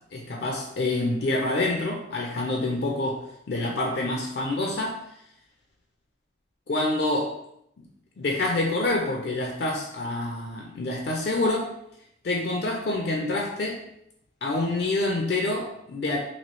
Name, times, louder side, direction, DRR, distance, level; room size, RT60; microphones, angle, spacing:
voice 1, 0.1-3.2 3.5-5.0 6.7-7.3 8.2-11.7 12.2-13.8 14.4-16.2, left 2 dB, 55° left, 0 dB, 0.4 m, -27 dB
3.0 x 2.7 x 3.0 m, 0.76 s
head